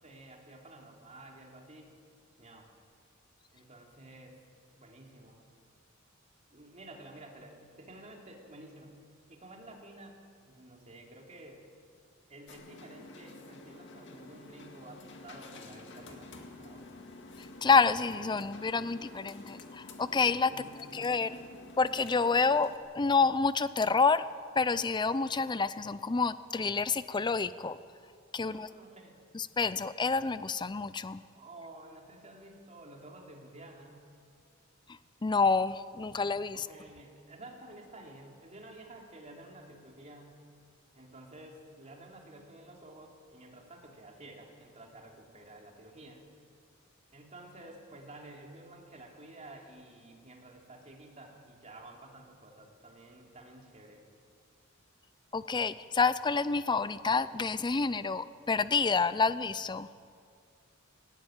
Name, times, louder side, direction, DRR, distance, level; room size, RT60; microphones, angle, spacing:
voice 1, 0.0-1.9 2.4-2.7 3.5-4.4 4.7-5.4 6.5-8.9 9.3-10.2 10.4-11.6 12.3-16.8 20.5-21.1 28.4-29.2 31.3-34.0 36.5-40.4 40.9-46.2 47.1-54.0, right 1 dB, 35° right, 0 dB, 3.1 m, -51 dB
sound 1, 12.5-22.8, left 2 dB, 60° left, 2.0 m, -49 dB
voice 2, 17.6-19.6 20.0-20.5 20.9-21.4 21.8-22.7 23.0-24.2 24.6-27.8 28.3-28.7 29.3-31.2 35.2-36.6 55.3-59.9, left 4 dB, 20° left, 15 dB, 0.5 m, -28 dB
18.0 x 17.5 x 9.0 m, 2.2 s
head